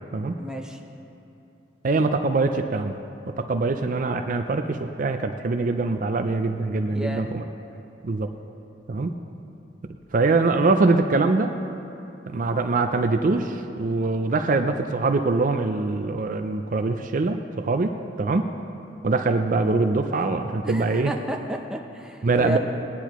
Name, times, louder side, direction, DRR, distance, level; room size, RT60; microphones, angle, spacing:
voice 1, 0.4-0.8 6.9-7.3 20.6-22.6, right 1 dB, 5° right, 1 dB, 0.7 m, -32 dB
voice 2, 1.8-3.0 3.4-7.4 8.0-8.3 8.9-9.1 10.1-11.5 12.3-18.5 19.0-21.1 22.2-22.6, right 3 dB, 45° right, 7 dB, 0.4 m, -23 dB
18.0 x 9.9 x 3.0 m, 2.8 s
head